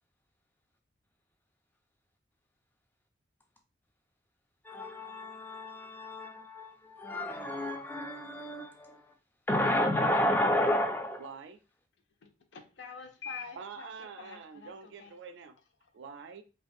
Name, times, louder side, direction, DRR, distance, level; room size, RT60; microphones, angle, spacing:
voice 1, 4.6-9.1 9.5-11.3, left 1 dB, 10° left, 0.3 m, -31 dB
voice 2, 11.2-11.6 13.6-15.6 15.9-16.4, right 5 dB, 70° right, 0.3 m, -46 dB
voice 3, 12.2-15.1, left 5 dB, 70° left, 0.5 m, -46 dB
2.5 x 2.2 x 2.5 m
head